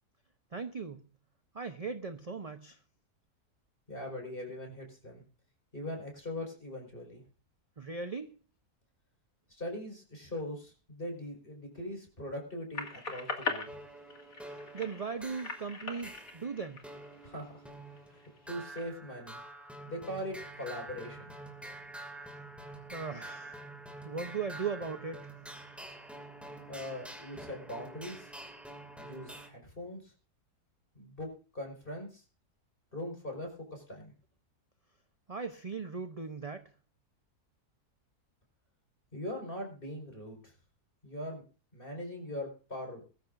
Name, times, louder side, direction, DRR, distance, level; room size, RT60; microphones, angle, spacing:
voice 1, 0.5-1.0 1.5-2.8 7.8-8.4 14.5-16.8 22.9-23.6 24.0-25.3 35.3-36.7, right 5 dB, 30° right, 0.7 m, -38 dB
voice 2, 3.9-5.2 5.7-7.2 9.5-13.8 17.2-17.6 18.1-19.4 19.9-21.3 26.7-28.3 29.0-30.1 30.9-32.2 32.9-34.1 39.1-40.5 41.0-41.4 41.7-43.0, left 1 dB, 35° left, 5.2 m, -41 dB
sound 1, 12.7-17.5 18.0-18.8, left 4 dB, 60° left, 2.7 m, -40 dB
sound 2, 13.7-29.5, right 2 dB, ahead, 2.3 m, -47 dB
22.0 x 14.0 x 2.6 m
omnidirectional pair, 1.6 m